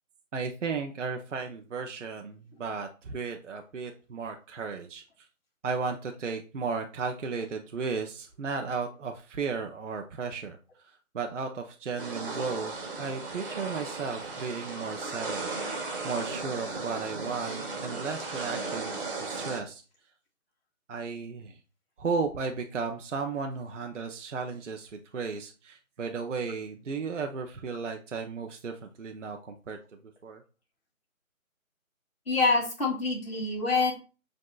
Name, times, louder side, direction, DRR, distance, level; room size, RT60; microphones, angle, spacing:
voice 1, 0.3-5.0 5.6-10.6 10.8-15.5 16.0-19.8 20.9-21.6 22.0-29.8 30.2-30.4, right 5 dB, 60° right, 4 dB, 0.7 m, -34 dB
sound 1, 12.0-19.6, right 3 dB, 40° right, 1.2 m, -36 dB
voice 2, 32.3-33.9, left 3 dB, 45° left, -1 dB, 1.7 m, -26 dB
7.6 x 2.7 x 2.3 m, 0.35 s
figure-of-eight pair, 150°, 43 cm